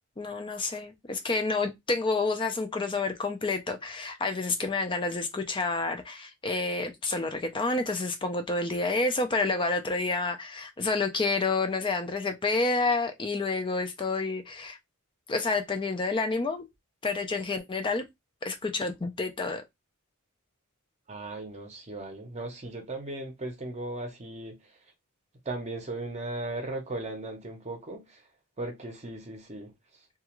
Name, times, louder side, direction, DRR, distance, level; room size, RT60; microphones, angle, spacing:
voice 1, 0.2-14.8 15.3-16.7 17.0-18.0 18.4-19.6, left 3 dB, 20° left, 0.4 m, -29 dB
voice 2, 21.1-24.7 25.4-28.2 28.6-29.7, right 2 dB, 30° right, 0.7 m, -37 dB
2.4 x 2.3 x 2.9 m
head